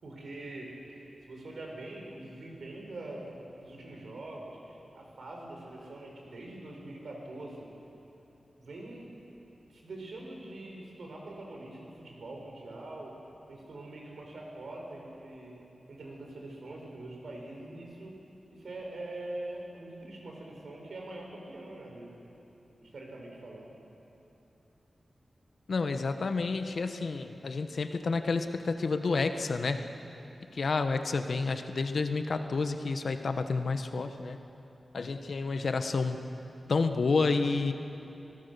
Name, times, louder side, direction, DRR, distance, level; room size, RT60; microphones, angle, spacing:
voice 1, 0.0-7.7 8.6-9.1 9.7-13.1 13.5-15.5 15.9-18.2 18.5-22.2 22.8-23.7, right 2 dB, 75° right, 0 dB, 4.9 m, -43 dB
voice 2, 25.7-29.8 30.5-34.4 34.9-36.2 36.7-37.7, left 4 dB, 60° left, 8 dB, 1.1 m, -30 dB
27.0 x 17.5 x 6.9 m, 3.0 s
wide cardioid pair, 125°, 0 cm